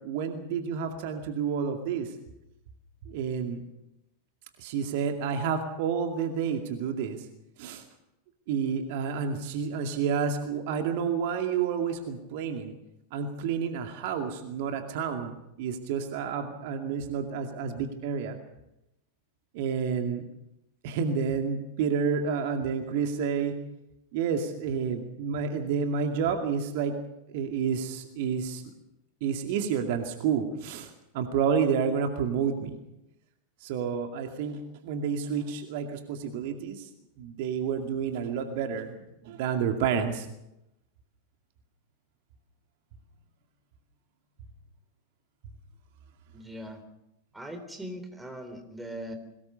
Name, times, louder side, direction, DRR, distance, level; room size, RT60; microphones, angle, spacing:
voice 1, 0.0-2.1 3.1-3.6 4.6-7.2 7.6-7.8 8.5-12.7 13.1-15.3 15.6-18.4 19.5-20.2 20.8-23.6 24.1-27.0 27.3-28.6 29.2-32.8 33.6-36.9 37.2-40.3, right 6 dB, 50° right, 5 dB, 2.3 m, -30 dB
voice 2, 46.3-46.8 47.3-49.1, equal, 5° right, 7 dB, 3.7 m, -40 dB
22.5 x 19.5 x 6.9 m, 0.87 s
figure-of-eight pair, 90°, 0 cm